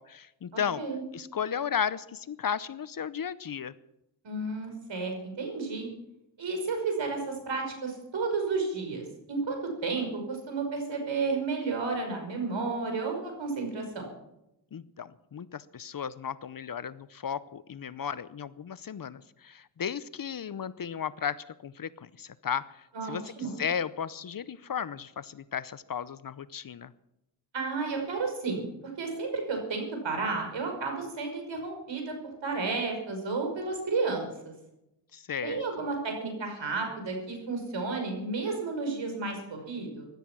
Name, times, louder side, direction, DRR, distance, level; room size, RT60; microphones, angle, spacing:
voice 1, 0.0-0.8 1.1-3.7 14.7-26.9 35.1-35.6, left 7 dB, 45° left, 16 dB, 0.7 m, -35 dB
voice 2, 0.5-1.0 4.2-5.9 6.4-9.6 9.8-14.0 22.9-23.6 27.5-28.7 29.0-32.1 32.4-34.5 35.4-40.1, right 4 dB, 70° right, 3 dB, 5.7 m, -32 dB
16.0 x 12.5 x 6.1 m, 0.87 s
cardioid pair, 80°, 47 cm